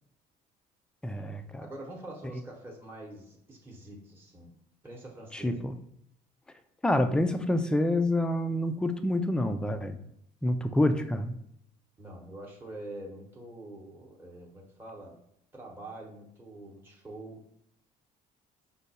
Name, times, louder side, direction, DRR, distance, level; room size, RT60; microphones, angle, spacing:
voice 1, 1.0-1.6 5.3-5.8 6.8-10.0 10.4-11.3, left 1 dB, 5° left, 8 dB, 0.3 m, -27 dB
voice 2, 1.6-4.5 4.8-5.5 12.0-15.2 15.5-17.4, right 1 dB, 15° right, -2 dB, 0.9 m, -45 dB
5.2 x 2.3 x 4.1 m, 0.75 s
cardioid pair, 110°, 17 cm